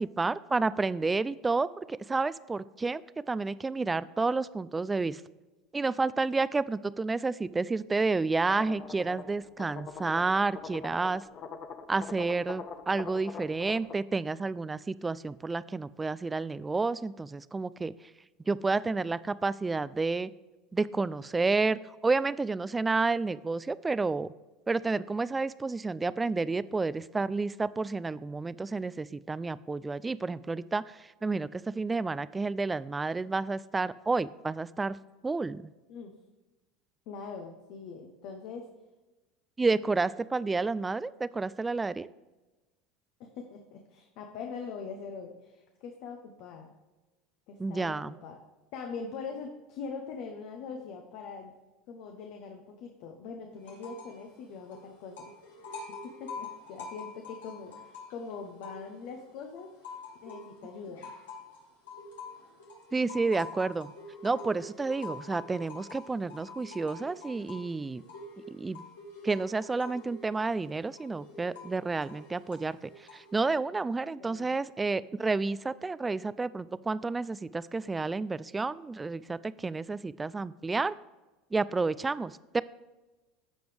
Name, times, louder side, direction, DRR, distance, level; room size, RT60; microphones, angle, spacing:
voice 1, 0.0-3.0 3.3-5.2 5.7-11.2 11.9-17.9 18.5-20.3 20.7-24.3 24.7-35.0 35.2-35.7 39.6-42.1 47.6-48.2 62.9-63.9 64.2-68.0 68.5-68.8 69.2-72.8 73.1-80.9 81.5-82.6, right 3 dB, 15° right, 17 dB, 0.4 m, -30 dB
sound 1, 8.5-13.9, left 6 dB, 45° left, 0.8 m, -44 dB
voice 2, 37.1-38.7 40.7-40.9 43.2-46.7 47.5-48.4 48.7-51.5 51.9-55.3 55.7-59.8 60.2-61.1 74.2-74.5, left 5 dB, 65° left, 4 dB, 1.0 m, -42 dB
sound 2, 53.6-54.2 54.5-59.2 59.6-73.4, left 3 dB, 85° left, 2.2 m, -46 dB
14.0 x 5.1 x 3.4 m, 1.2 s
hypercardioid pair, 90°, 0 cm